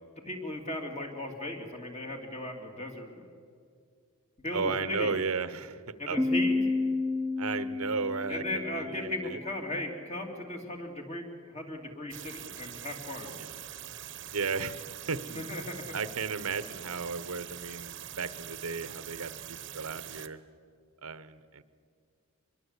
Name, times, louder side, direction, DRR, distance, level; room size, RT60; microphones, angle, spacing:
voice 1, 0.3-3.3 4.4-4.6 4.9-5.1 6.0-6.6 8.3-11.2 11.5-13.3 15.3-15.8, left 1 dB, 30° left, 2 dB, 2.8 m, -37 dB
voice 2, 4.5-6.2 7.4-9.4 13.3-13.6 14.3-15.4 15.9-20.4 21.0-21.6, right 4 dB, 75° right, 14 dB, 1.0 m, -35 dB
Piano, 6.2-9.6, left 3 dB, ahead, 1.2 m, -31 dB
sound 1, 12.1-20.3, right 11 dB, 55° right, 1.0 m, -44 dB
24.5 x 22.0 x 8.3 m, 2.2 s
head